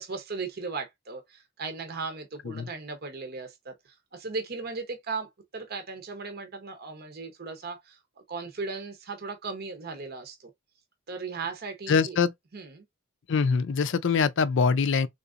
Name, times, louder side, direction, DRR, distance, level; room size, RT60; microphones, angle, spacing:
voice 1, 0.0-8.0 8.3-10.5 11.1-12.2 12.5-12.8, right 4 dB, 45° right, 0.7 m, -37 dB
voice 2, 11.9-12.3 13.3-15.1, left 5 dB, 60° left, 0.4 m, -23 dB
3.7 x 2.8 x 2.4 m
head